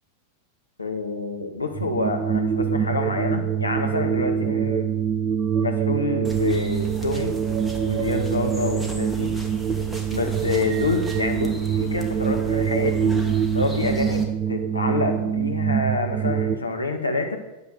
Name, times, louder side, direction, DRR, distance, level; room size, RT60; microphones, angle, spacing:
voice 1, 0.8-4.9 5.6-7.4 7.8-9.3 10.1-13.1 13.5-17.4, left 3 dB, 80° left, 3 dB, 2.1 m, -27 dB
sound 1, 1.7-16.6, right 8 dB, 30° right, 0.9 m, -25 dB
sound 2, 6.2-14.2, right 1 dB, 5° right, 2.4 m, -36 dB
10.0 x 9.9 x 8.1 m, 0.98 s
figure-of-eight pair, 90°, 0 cm